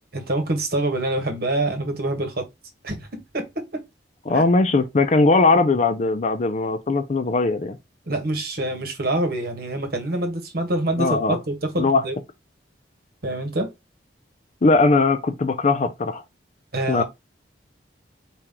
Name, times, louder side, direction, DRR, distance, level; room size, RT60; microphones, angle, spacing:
voice 1, 0.1-2.5 2.8-3.8 4.3-4.4 8.1-12.1 13.2-13.7 16.7-17.0, right 1 dB, 60° right, 1.2 m, -26 dB
voice 2, 4.3-7.8 11.0-11.4 11.8-12.0 14.6-16.2 16.9-17.0, left 3 dB, 40° left, 0.5 m, -19 dB
4.5 x 3.0 x 3.7 m
head